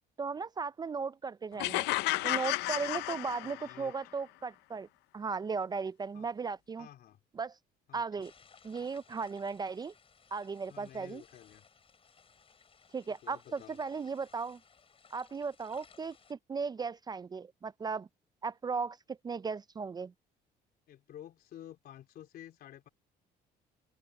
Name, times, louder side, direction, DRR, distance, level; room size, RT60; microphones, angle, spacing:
voice 1, 0.2-1.9 2.2-4.9 5.1-6.9 7.4-7.5 7.9-8.3 8.6-9.9 10.3-11.2 12.9-14.6 15.1-18.1 18.4-20.1, right 5 dB, 25° right, 0.4 m, -36 dB
sound 1, 1.6-3.9, left 19 dB, 90° left, 0.5 m, -32 dB
voice 2, 3.4-3.9 6.1-6.3 6.8-7.2 7.9-8.3 10.7-11.6 13.2-13.8 20.9-22.9, left 11 dB, 65° left, 3.3 m, -51 dB
sound 2, 8.2-16.3, left 6 dB, 35° left, 5.0 m, -61 dB
open air
cardioid pair, 110°, 17 cm